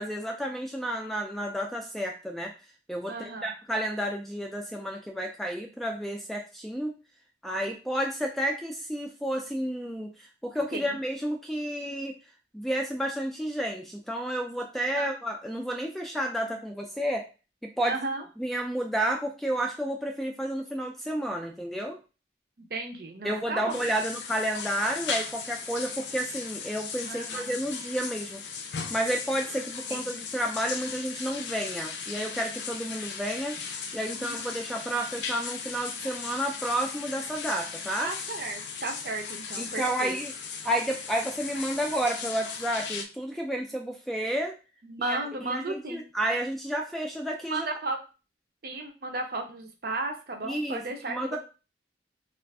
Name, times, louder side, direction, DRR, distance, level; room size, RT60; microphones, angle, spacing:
voice 1, 0.0-2.5 2.9-7.0 7.4-12.2 12.5-17.2 17.6-17.9 18.4-22.0 23.2-28.4 28.9-33.6 33.9-38.1 39.6-40.3 40.6-44.5 45.1-45.2 45.5-47.7 50.5-50.8 51.1-51.4, right 1 dB, ahead, 2 dB, 0.3 m, -31 dB
voice 2, 3.1-3.5 10.7-11.0 14.7-15.1 17.8-18.2 22.6-23.9 27.1-27.6 29.9-30.2 34.1-34.4 38.0-40.2 44.8-46.0 47.5-48.0 48.6-51.4, right 2 dB, 55° right, 4 dB, 0.6 m, -34 dB
sound 1, 23.7-43.0, left 6 dB, 80° left, 0.5 m, -37 dB
2.4 x 2.4 x 3.4 m, 0.32 s
head